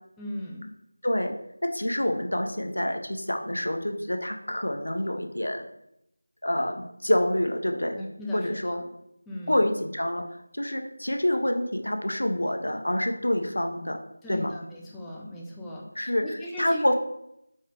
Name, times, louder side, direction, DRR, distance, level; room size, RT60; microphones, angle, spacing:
voice 1, 0.2-0.7 7.9-8.8 9.3-9.6 14.2-16.8, left 1 dB, 5° left, -4 dB, 0.3 m, -37 dB
voice 2, 1.0-1.4 1.7-5.6 6.4-8.0 8.3-8.8 9.5-10.2 10.5-14.0 14.3-14.5 16.0-16.9, left 1 dB, 65° left, 4 dB, 0.6 m, -27 dB
3.6 x 3.1 x 3.2 m, 0.81 s
figure-of-eight pair, 170°, 0 cm